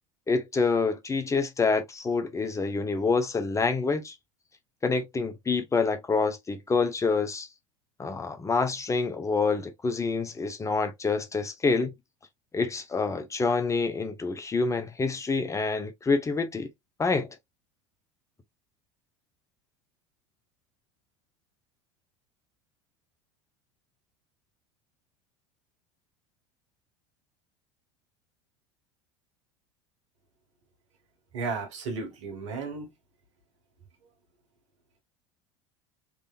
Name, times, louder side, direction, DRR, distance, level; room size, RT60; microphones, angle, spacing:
voice 1, 0.3-4.1 4.8-7.5 8.0-11.9 12.5-16.7 17.0-17.3, left 4 dB, 20° left, 0.9 m, -27 dB
voice 2, 31.3-32.9, right 4 dB, 75° right, 1.6 m, -34 dB
3.8 x 3.3 x 2.5 m
hypercardioid pair, 75°, 16 cm